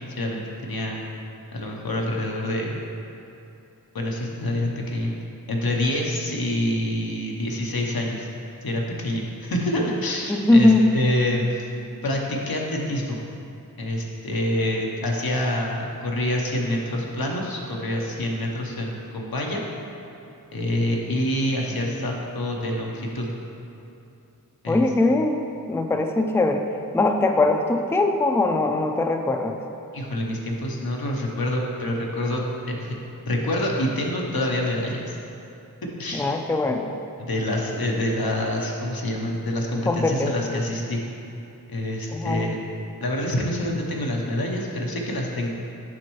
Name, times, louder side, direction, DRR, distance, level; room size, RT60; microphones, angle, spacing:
voice 1, 0.2-1.0 1.5-2.8 3.9-5.1 5.5-8.3 8.6-11.6 12.0-13.2 13.8-19.6 20.5-23.3 24.6-24.8 29.9-33.0 33.3-35.2 36.0-36.2 37.2-41.0 41.7-42.6 43.0-45.5, left 1 dB, 90° left, -1 dB, 0.8 m, -26 dB
voice 2, 10.3-10.9 24.7-25.4 25.7-26.6 26.9-29.6 36.1-36.9 39.9-40.6 42.1-42.6, left 2 dB, 5° left, 4 dB, 0.3 m, -21 dB
7.5 x 5.3 x 3.1 m, 2.8 s
wide cardioid pair, 45°, 35 cm